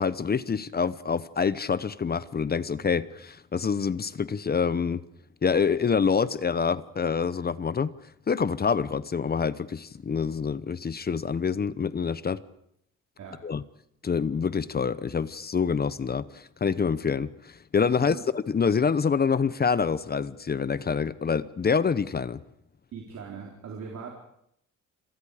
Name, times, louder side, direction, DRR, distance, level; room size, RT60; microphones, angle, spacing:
voice 1, 0.0-5.0 5.4-7.9 8.3-12.4 13.4-13.6 14.0-22.4, left 6 dB, 30° left, 16 dB, 0.9 m, -26 dB
voice 2, 17.9-18.2 22.9-24.1, right 5 dB, 65° right, 0 dB, 4.2 m, -40 dB
29.5 x 22.5 x 5.0 m, 0.74 s
cardioid pair, 90°, 30 cm